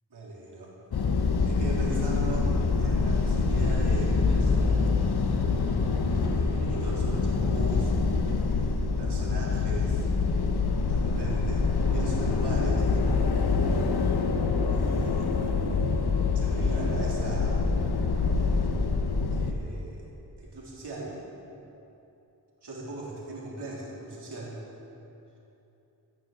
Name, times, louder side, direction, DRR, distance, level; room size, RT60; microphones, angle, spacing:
voice 1, 0.1-0.8 1.4-2.5 2.8-5.0 6.1-7.9 8.6-10.0 10.9-12.9 14.7-15.3 16.3-17.6 19.3-20.0 20.4-21.2 22.6-24.6, right 2 dB, 85° right, -5 dB, 3.8 m, -39 dB
sound 1, 0.9-19.5, left 4 dB, 75° left, 1.1 m, -25 dB
15.0 x 10.5 x 7.3 m, 2.9 s
wide cardioid pair, 120°, 39 cm